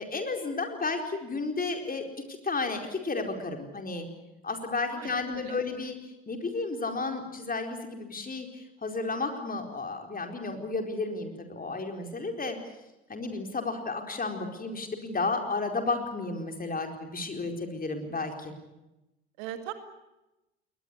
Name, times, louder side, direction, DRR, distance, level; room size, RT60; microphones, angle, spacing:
voice 1, 0.0-2.0 2.4-4.1 4.4-6.0 6.3-12.6 13.1-18.5, left 3 dB, 25° left, 4 dB, 4.4 m, -32 dB
voice 2, 4.9-5.6 19.4-19.7, right 12 dB, 65° right, 9 dB, 2.2 m, -40 dB
21.0 x 20.0 x 9.8 m, 0.97 s
figure-of-eight pair, 55°, 33 cm